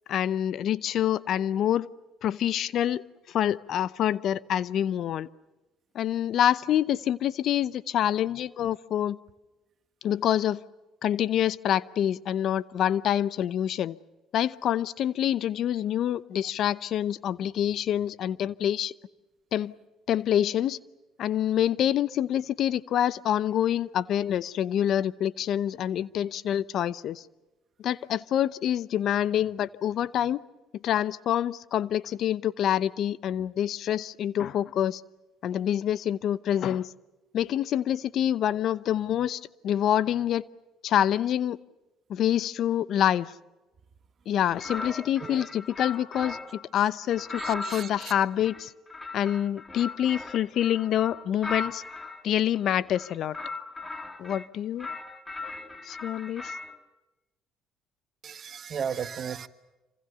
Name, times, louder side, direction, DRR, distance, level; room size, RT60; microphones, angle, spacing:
voice 1, 0.1-1.9 2.2-3.0 3.3-5.3 5.9-9.2 10.0-10.6 11.0-14.0 14.3-18.9 19.5-19.7 20.1-20.8 21.2-27.2 27.8-30.4 30.8-35.0 35.4-36.9 37.3-40.4 40.8-41.6 42.1-43.3 44.3-46.4 46.7-48.7 49.1-51.8 52.2-53.4 54.2-54.9 55.8-56.5, left 10 dB, 65° left, 0.8 m, -26 dB
sound 1, 44.5-46.7 47.1-52.2 52.9-54.5 54.8-56.8, left 3 dB, 20° left, 2.5 m, -38 dB
voice 2, 47.3-48.1 58.2-59.5, right 7 dB, 50° right, 1.7 m, -36 dB
27.5 x 25.5 x 6.9 m
supercardioid pair, 75°, 0 cm